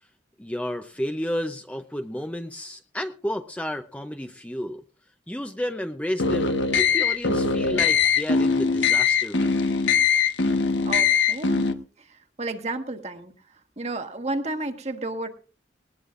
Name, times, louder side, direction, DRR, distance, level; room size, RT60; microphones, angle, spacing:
voice 1, 0.4-4.8 5.3-9.8, left 1 dB, 10° left, 6 dB, 0.6 m, -32 dB
sound 1, 6.2-11.7, left 5 dB, 90° left, 1.3 m, -21 dB
voice 2, 10.8-11.7 12.1-13.3 13.8-15.3, right 2 dB, 35° right, 6 dB, 1.5 m, -32 dB
19.5 x 19.0 x 2.5 m, 0.37 s
head